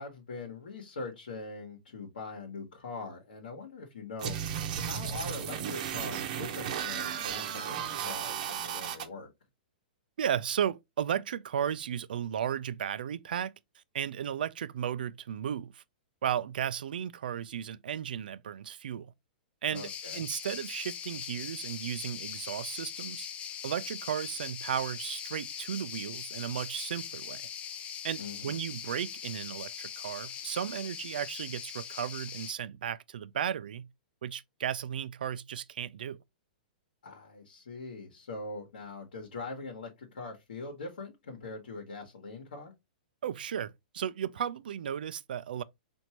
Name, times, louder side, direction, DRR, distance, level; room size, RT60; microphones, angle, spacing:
voice 1, 0.0-4.4 4.8-9.3 19.7-20.3 28.2-28.6 37.0-42.7, left 3 dB, 85° left, 1.2 m, -42 dB
sound 1, 4.2-9.0, right 8 dB, 60° right, 0.8 m, -34 dB
voice 2, 10.2-13.5 13.9-15.8 16.2-19.1 19.6-23.3 23.6-27.4 28.0-33.9 34.2-36.2 43.2-45.6, right 9 dB, 75° right, 0.4 m, -34 dB
sound 2, 19.7-32.5, left 8 dB, 25° left, 0.5 m, -41 dB
4.4 x 2.6 x 2.9 m
hypercardioid pair, 125°, 5 cm